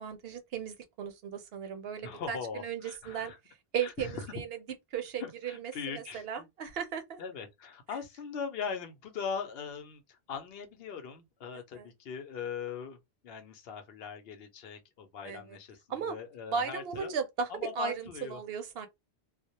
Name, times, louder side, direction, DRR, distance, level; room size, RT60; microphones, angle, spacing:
voice 1, 0.0-4.6 4.9-7.2 11.7-11.9 15.2-15.6 15.9-16.2 16.5-17.5 17.8-18.9, right 7 dB, 70° right, 0.8 m, -36 dB
voice 2, 2.0-3.4 3.8-4.2 5.2-6.5 7.2-13.0 13.2-17.1 17.5-18.4, left 6 dB, 70° left, 0.8 m, -40 dB
2.1 x 2.0 x 2.8 m
omnidirectional pair, 1.1 m